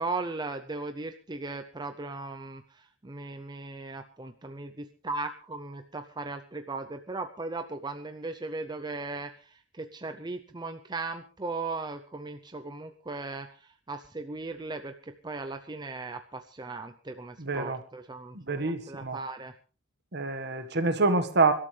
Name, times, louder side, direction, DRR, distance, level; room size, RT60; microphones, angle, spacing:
voice 1, 0.0-19.6, right 3 dB, 20° right, 7 dB, 0.7 m, -37 dB
voice 2, 17.4-17.8 18.3-19.2 20.1-21.5, right 3 dB, 55° right, 9 dB, 1.7 m, -26 dB
25.0 x 12.5 x 3.3 m, 0.36 s
head